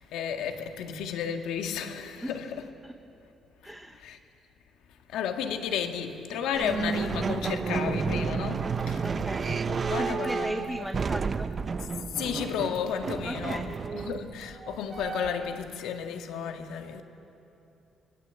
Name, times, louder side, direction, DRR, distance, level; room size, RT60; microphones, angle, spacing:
voice 1, 0.1-2.7 4.0-4.2 5.1-10.7 12.2-17.0, left 7 dB, 85° left, 1.8 m, -33 dB
voice 2, 3.6-4.0 9.0-9.5 10.0-11.5 13.2-13.7, right 1 dB, 5° right, 1.0 m, -36 dB
sound 1, 6.5-15.6, right 5 dB, 30° right, 0.7 m, -31 dB
26.5 x 20.0 x 8.2 m
cardioid pair, 130°, 0 cm